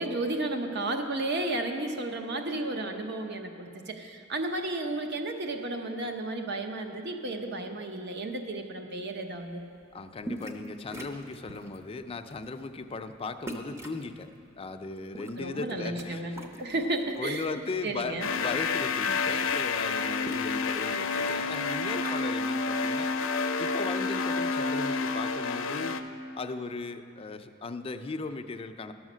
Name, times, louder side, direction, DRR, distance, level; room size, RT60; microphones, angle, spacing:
voice 1, 0.0-9.6 15.4-17.5 17.8-18.3, right 2 dB, 60° right, 5 dB, 0.8 m, -33 dB
voice 2, 9.9-14.3 14.6-16.4 17.2-23.1 23.6-26.0 26.4-28.9, left 3 dB, 30° left, 8 dB, 0.4 m, -37 dB
sound 1, 10.2-10.7 10.9-11.8 12.3-12.5 13.5-14.0 14.9-16.1 16.3-17.4 17.9-18.6 18.9-19.0 19.2-22.3, equal, 15° right, 0.6 m, -43 dB
sound 2, 18.2-26.0, left 4 dB, 90° left, 0.5 m, -29 dB
11.5 x 6.4 x 6.1 m, 2.4 s
head